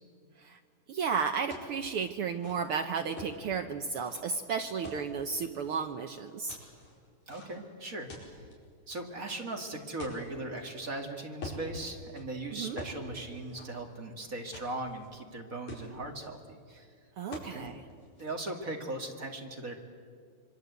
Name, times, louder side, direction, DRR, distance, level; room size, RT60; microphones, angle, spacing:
voice 1, 0.9-6.6 12.5-12.8 17.2-17.8, right 6 dB, 80° right, 6 dB, 1.2 m, -33 dB
sound 1, 1.5-1.7 2.2-3.4 4.0-4.2 4.8-5.8 6.5-7.7 8.1-8.5 9.3-10.9 11.4-11.7 12.1-12.2 12.8-13.0 13.3-14.1 14.5-15.1 15.4-15.5 15.7-16.3 17.3-17.5 17.9-18.4, left 2 dB, 70° left, 6.3 m, -45 dB
voice 2, 7.3-8.4 8.9-16.9 17.5-17.7 18.2-19.7, right 2 dB, 30° right, 3 dB, 2.1 m, -39 dB
26.0 x 24.0 x 8.1 m, 2.1 s
omnidirectional pair, 3.6 m